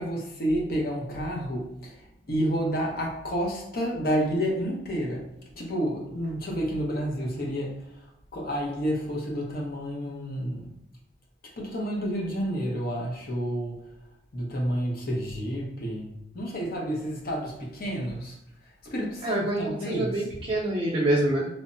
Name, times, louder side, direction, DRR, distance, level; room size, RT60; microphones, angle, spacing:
voice 1, 0.0-1.9 2.3-5.2 5.6-7.9 8.3-10.7 11.6-13.8 14.3-18.4 18.8-20.4, equal, 55° left, -1 dB, 0.7 m, -30 dB
voice 2, 19.2-21.5, right 1 dB, 30° right, -6 dB, 0.5 m, -26 dB
3.2 x 2.0 x 2.5 m, 0.82 s
head